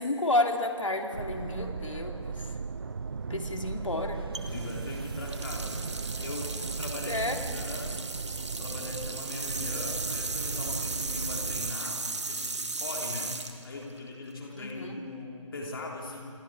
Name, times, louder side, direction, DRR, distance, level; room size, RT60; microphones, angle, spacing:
voice 1, 0.0-2.5 3.3-4.2 7.1-7.4 14.6-15.0, left 2 dB, 70° left, 4 dB, 2.7 m, -30 dB
sound 1, 1.1-11.8, right 5 dB, 45° right, 0.5 m, -37 dB
sound 2, 4.3-14.5, right 3 dB, 60° right, 1.9 m, -36 dB
voice 2, 4.5-8.0 8.6-12.0 12.3-13.3 13.6-16.3, left 3 dB, 45° left, -1 dB, 3.3 m, -40 dB
28.0 x 27.5 x 4.8 m, 2.7 s
figure-of-eight pair, 150°, 17 cm